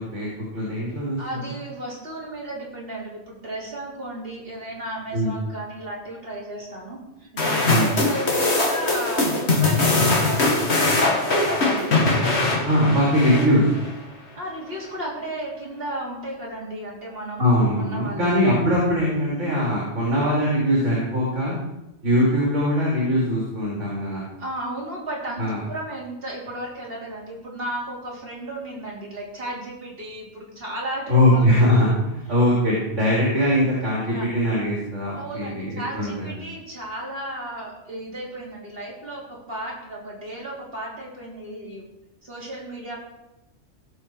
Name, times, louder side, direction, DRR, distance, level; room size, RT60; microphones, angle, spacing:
voice 1, 0.1-1.2 5.1-5.3 7.7-7.9 12.6-13.7 17.4-21.5 22.0-24.2 25.4-25.6 31.1-36.4, equal, 75° right, -5 dB, 3.4 m, -21 dB
voice 2, 1.2-12.7 14.4-17.5 17.8-18.3 24.4-31.5 33.4-33.5 34.1-34.3 35.1-41.9 42.2-43.0, right 1 dB, 50° right, -4 dB, 3.5 m, -34 dB
sound 1, 7.4-13.9, left 2 dB, 60° left, 2.0 m, -21 dB
17.0 x 6.6 x 4.6 m, 0.94 s
omnidirectional pair, 1.3 m